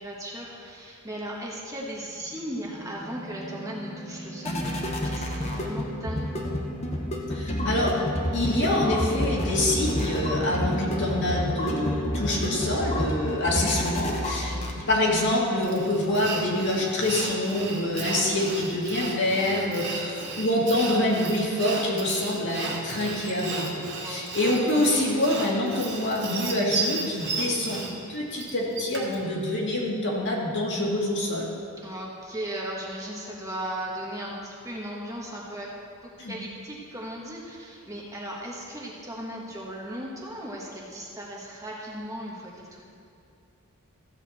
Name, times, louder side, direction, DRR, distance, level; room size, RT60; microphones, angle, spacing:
voice 1, 0.0-6.5 12.7-13.1 23.9-24.3 31.8-35.7 36.0-42.8, right 1 dB, 15° right, -4 dB, 1.4 m, -37 dB
sound 1, 2.3-15.2, left 1 dB, 30° left, 1.0 m, -30 dB
voice 2, 7.3-7.9 8.3-14.6 14.9-27.8 28.1-31.5 36.2-36.3, left 1 dB, 55° left, -3 dB, 2.0 m, -26 dB
Sawing, 15.6-29.2, right 3 dB, 50° right, 2.0 m, -34 dB
14.0 x 8.3 x 4.2 m, 2.4 s
head